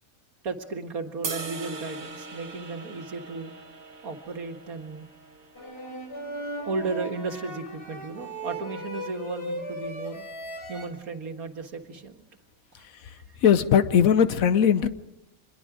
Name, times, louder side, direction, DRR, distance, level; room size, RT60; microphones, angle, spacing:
voice 1, 0.4-3.5 4.0-5.1 5.7-10.2 10.7-12.2 12.7-13.4, right 4 dB, 90° right, 5 dB, 2.2 m, -35 dB
sound 1, 1.2-7.5, right 4 dB, 70° right, 2.2 m, -41 dB
sound 2, 5.6-10.9, right 1 dB, 45° left, 4.3 m, -37 dB
voice 2, 13.4-14.9, left 8 dB, 75° left, 13 dB, 1.3 m, -19 dB
25.0 x 21.5 x 5.0 m, 0.98 s
omnidirectional pair, 1.5 m